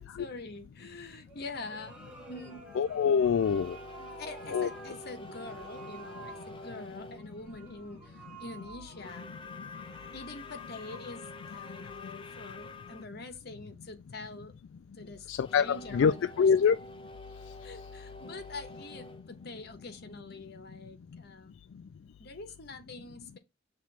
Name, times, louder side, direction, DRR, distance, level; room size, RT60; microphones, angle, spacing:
voice 1, 0.0-2.7 4.0-9.4 10.1-14.6 14.9-16.5 17.6-21.5 22.2-23.4, left 3 dB, 55° left, 1.1 m, -45 dB
sound 1, 1.3-12.3, right 3 dB, 5° right, 1.4 m, -51 dB
voice 2, 2.8-3.8 4.5-4.7 15.3-16.8, left 6 dB, 80° left, 0.3 m, -25 dB
sound 2, 3.4-7.2 8.9-13.1 15.4-20.2, left 2 dB, 25° left, 0.6 m, -47 dB
6.0 x 3.1 x 5.7 m
head